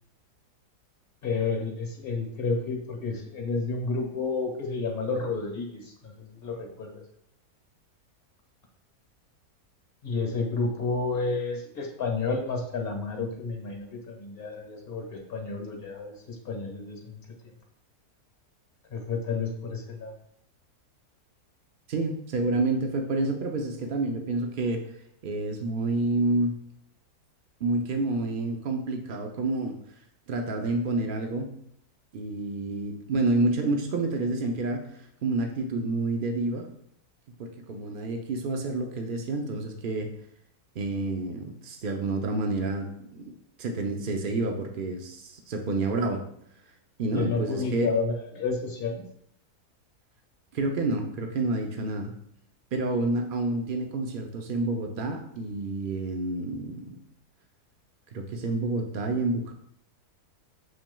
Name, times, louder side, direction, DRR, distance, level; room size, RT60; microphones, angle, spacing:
voice 1, 1.2-7.0 10.0-17.5 18.9-20.1 47.1-49.0, left 4 dB, 40° left, 1 dB, 1.5 m, -31 dB
voice 2, 21.9-24.8 25.2-26.6 27.6-29.7 30.3-31.6 32.1-36.7 37.4-40.1 40.8-46.2 47.0-47.9 50.5-52.1 52.7-57.0 58.1-59.5, right 2 dB, 70° right, 4 dB, 0.5 m, -29 dB
7.5 x 5.9 x 2.3 m, 0.71 s
omnidirectional pair, 1.7 m